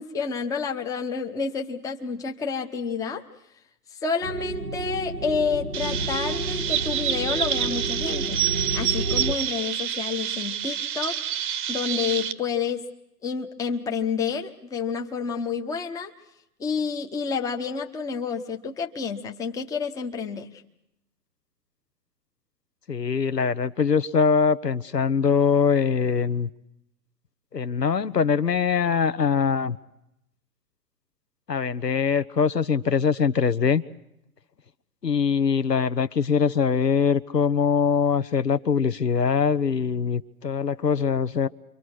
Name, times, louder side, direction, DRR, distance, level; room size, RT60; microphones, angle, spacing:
voice 1, 0.0-3.2 4.0-8.4 8.7-11.2 11.7-12.9 13.2-16.1 16.6-20.5, left 5 dB, 5° left, 4 dB, 1.0 m, -29 dB
sound 1, 4.2-9.3, right 2 dB, 90° right, 1.5 m, -30 dB
Chirp tweet, 5.7-12.3, right 10 dB, 30° right, 1.1 m, -28 dB
voice 2, 22.9-26.5 27.5-29.8 31.5-33.8 35.0-41.5, left 6 dB, 80° left, 11 dB, 1.3 m, -22 dB
28.0 x 24.0 x 6.3 m, 0.81 s
figure-of-eight pair, 120°, 48 cm